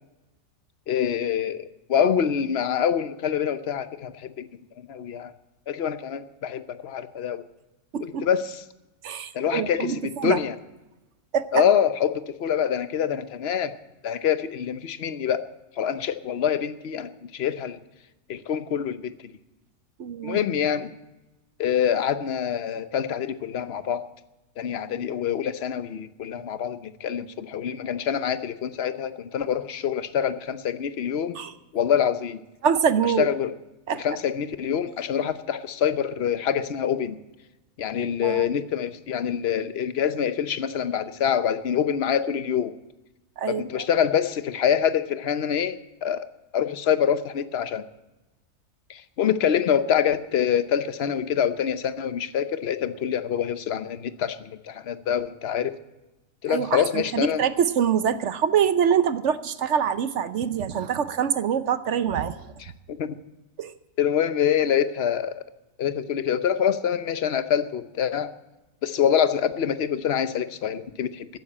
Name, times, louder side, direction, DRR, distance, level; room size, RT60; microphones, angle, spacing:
voice 1, 0.9-4.5 4.9-5.3 5.7-7.4 8.0-8.6 9.3-10.5 11.5-13.7 14.0-15.5 15.8-17.8 18.3-19.1 20.2-20.9 21.6-24.0 24.6-31.4 31.7-32.4 33.2-33.5 34.0-37.2 37.8-42.7 43.5-46.3 46.5-47.8 48.9-55.7 56.4-57.4 62.9-63.2 64.0-65.4 65.8-68.3 68.8-71.3, left 8 dB, 50° left, 12 dB, 0.9 m, -25 dB
voice 2, 7.9-8.3 9.0-10.4 11.3-11.6 20.0-20.4 31.3-31.5 32.6-33.3 33.9-34.0 38.2-38.5 43.4-43.9 56.5-62.4 63.6-63.7, right 8 dB, 60° right, 13 dB, 0.8 m, -25 dB
14.5 x 10.5 x 8.6 m, 1.0 s
omnidirectional pair, 1.7 m